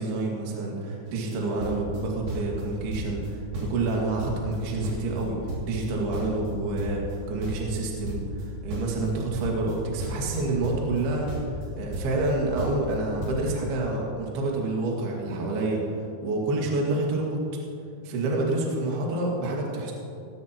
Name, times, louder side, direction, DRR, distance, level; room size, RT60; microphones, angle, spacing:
voice 1, 0.0-5.4 5.6-11.3 11.8-15.8 16.2-17.4 18.0-19.9, right 2 dB, 60° right, -2 dB, 3.5 m, -28 dB
sound 1, 1.1-1.3 1.6-2.6 2.9-3.3 3.5-5.2 5.5-8.4 8.7-11.0 11.3-12.3 12.6-13.0 13.2-13.4, right 1 dB, 45° right, 3.9 m, -34 dB
18.0 x 15.5 x 2.9 m, 2.6 s
omnidirectional pair, 5.6 m